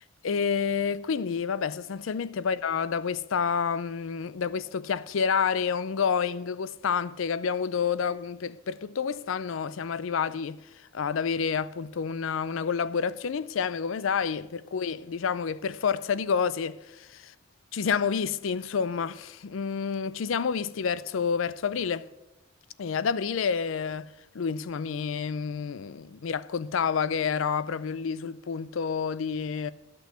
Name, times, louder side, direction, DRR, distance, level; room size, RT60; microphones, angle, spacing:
voice 1, 0.2-10.6 10.9-17.3 17.7-22.1 22.8-24.1 24.3-29.7, left 6 dB, 75° left, 0.4 m, -29 dB
11.0 x 6.2 x 8.0 m
head